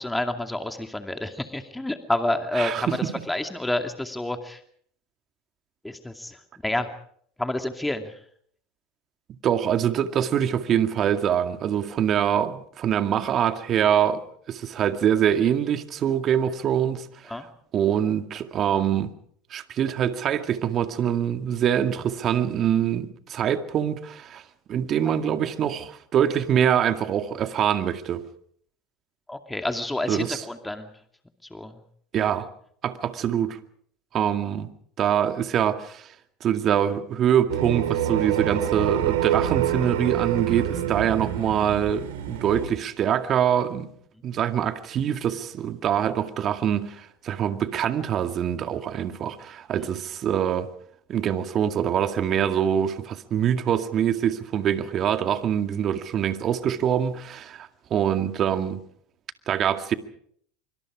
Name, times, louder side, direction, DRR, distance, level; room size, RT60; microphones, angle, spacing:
voice 1, 0.0-3.0 3.3-4.6 5.8-6.9 7.4-8.1 17.3-17.5 29.3-30.9 31.5-31.8 49.8-49.9, left 1 dB, 10° left, 2.4 m, -29 dB
voice 2, 2.6-3.0 9.4-17.3 17.7-19.1 19.5-24.4 24.7-28.3 30.1-30.4 32.1-32.5 32.8-33.6 34.1-34.7 35.0-36.1 36.4-43.9 44.2-50.7 51.1-58.8 59.5-59.9, right 9 dB, 45° right, 2.1 m, -24 dB
sound 1, 37.5-42.7, right 10 dB, 75° right, 4.5 m, -26 dB
25.5 x 25.0 x 5.0 m
hypercardioid pair, 85°, 0 cm